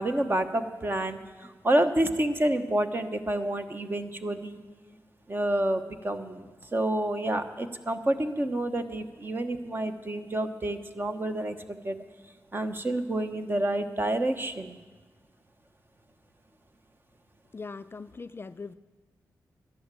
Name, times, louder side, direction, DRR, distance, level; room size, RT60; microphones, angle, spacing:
voice 1, 0.0-4.6 5.3-12.0 12.5-14.8, right 1 dB, 30° right, 8 dB, 1.1 m, -29 dB
voice 2, 17.5-18.7, left 4 dB, 35° left, 13 dB, 0.4 m, -40 dB
11.5 x 11.0 x 7.6 m, 1.3 s
cardioid pair, 60°, 7 cm